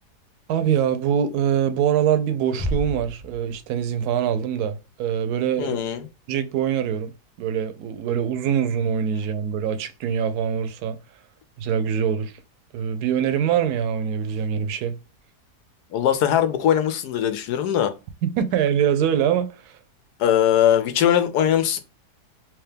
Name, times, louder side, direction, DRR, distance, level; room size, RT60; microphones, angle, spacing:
voice 1, 0.5-5.8 6.3-7.1 7.4-11.0 11.6-12.3 12.7-15.0 18.2-19.8, right 8 dB, 75° right, 1.1 m, -23 dB
sound 1, 2.6-4.2, equal, 15° left, 0.8 m, -31 dB
voice 2, 5.6-6.1 15.9-17.9 20.2-21.8, left 10 dB, 80° left, 1.2 m, -20 dB
3.5 x 2.9 x 3.3 m
omnidirectional pair, 1.7 m